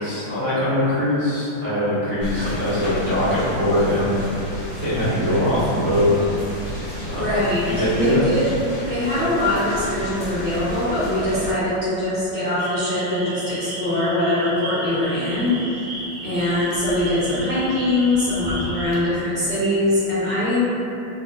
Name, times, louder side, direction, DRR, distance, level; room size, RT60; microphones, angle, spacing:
voice 1, 0.0-4.3 4.8-6.1 7.1-7.2 7.8-8.2, equal, 55° right, -12 dB, 1.1 m, -21 dB
sound 1, 2.2-11.5, equal, 50° left, 1.2 m, -32 dB
voice 2, 7.2-7.7 7.9-8.5 8.9-15.6 16.2-20.7, left 1 dB, 80° left, -12 dB, 0.5 m, -22 dB
sound 2, 12.6-19.0, right 2 dB, 75° right, 1.4 m, -34 dB
4.9 x 2.0 x 2.3 m, 2.8 s
omnidirectional pair, 2.1 m